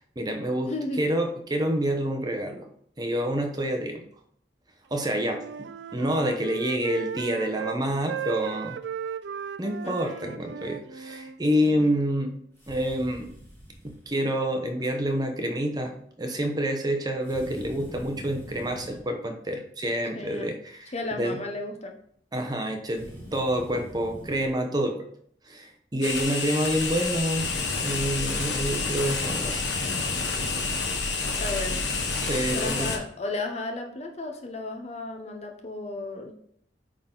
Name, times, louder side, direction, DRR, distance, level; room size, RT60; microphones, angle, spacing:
voice 1, 0.0-0.7 1.0-2.7 3.0-4.0 4.9-8.8 9.6-12.3 12.7-13.3 13.8-21.4 22.3-23.1 23.3-25.0 25.5-27.5 27.8-29.8 32.2-32.9, equal, 25° right, 4 dB, 0.9 m, -28 dB
voice 2, 0.7-1.0 9.8-10.3 11.6-11.9 20.1-20.5 20.9-21.9 31.4-31.9 32.5-36.3, left 2 dB, 40° left, 4 dB, 0.8 m, -34 dB
Wind instrument woodwind instrument, 4.9-7.8 8.1-11.4, right 8 dB, 75° right, 0.4 m, -36 dB
sound 1, 12.6-14.1 17.2-19.0 22.9-24.5, equal, 15° left, 2.1 m, -44 dB
sound 2, 26.0-33.0, left 4 dB, 85° left, 1.1 m, -29 dB
8.6 x 3.7 x 3.9 m, 0.65 s
head